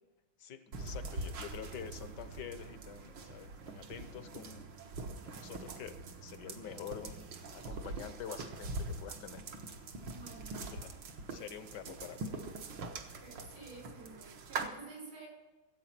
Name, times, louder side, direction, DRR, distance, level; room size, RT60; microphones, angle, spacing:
voice 1, 0.4-7.2 7.5-9.4 10.6-10.9 11.3-12.3, left 8 dB, 65° left, 11 dB, 1.3 m, -47 dB
sound 1, 0.7-14.7, right 3 dB, 70° right, 1.8 m, -43 dB
voice 2, 10.1-10.9 13.2-15.3, right 3 dB, 85° right, -2 dB, 6.6 m, -51 dB
15.5 x 8.2 x 5.9 m, 1.2 s
omnidirectional pair, 2.2 m